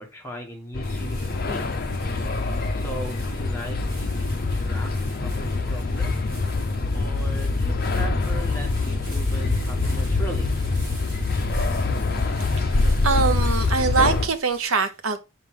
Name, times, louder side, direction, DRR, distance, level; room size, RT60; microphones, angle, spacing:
voice 1, 0.0-1.6 2.7-4.9 5.2-6.1 6.9-10.5, equal, 10° left, 1.6 m, -38 dB
sound 1, 0.7-14.3, left 3 dB, 45° left, 0.6 m, -24 dB
sound 2, 0.8-14.7, equal, 15° right, 4.2 m, -43 dB
voice 2, 13.0-15.2, right 4 dB, 75° right, 1.0 m, -23 dB
5.5 x 5.2 x 3.3 m
head